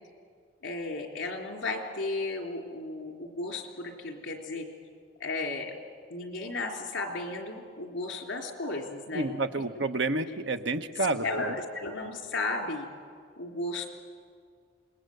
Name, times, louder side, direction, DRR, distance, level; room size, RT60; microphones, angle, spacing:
voice 1, 0.6-4.7 5.2-5.7 6.1-9.3 11.0-12.9 13.4-13.9, left 2 dB, 70° left, 3 dB, 3.5 m, -34 dB
voice 2, 9.1-11.2, right 2 dB, 65° right, 9 dB, 1.0 m, -29 dB
27.5 x 20.5 x 7.9 m, 2.1 s
head